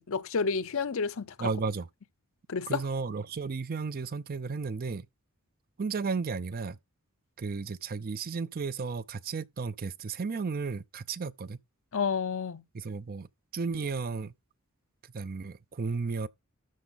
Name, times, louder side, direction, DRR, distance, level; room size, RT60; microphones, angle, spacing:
voice 1, 0.0-1.5 2.5-2.8 11.9-12.6, left 5 dB, 65° left, 0.6 m, -30 dB
voice 2, 1.4-1.9 2.7-5.1 5.8-6.8 7.4-11.6 12.7-13.3 13.5-14.3 15.1-16.3, right 4 dB, 45° right, 0.5 m, -33 dB
13.0 x 4.3 x 4.0 m
head